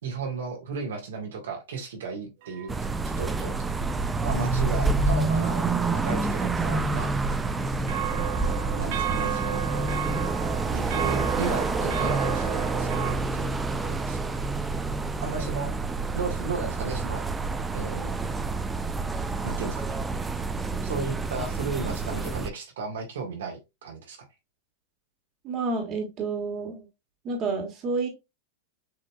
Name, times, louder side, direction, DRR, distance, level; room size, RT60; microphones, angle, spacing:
voice 1, 0.0-2.7 3.2-3.5 4.2-7.1 8.7-9.9 10.7-14.5 15.2-15.7 16.1-17.3 17.7-18.1 19.4-20.0 20.8-24.2, right 4 dB, 80° right, 1 dB, 1.5 m, -34 dB
sound 1, 2.4-3.0 7.9-13.1, right 12 dB, 60° right, 0.7 m, -33 dB
sound 2, 2.7-22.5, right 3 dB, 15° right, 0.4 m, -28 dB
voice 2, 25.4-26.9 27.2-28.1, right 4 dB, 40° right, 3 dB, 1.5 m, -29 dB
6.5 x 2.9 x 2.3 m, 0.23 s
hypercardioid pair, 120°, 0 cm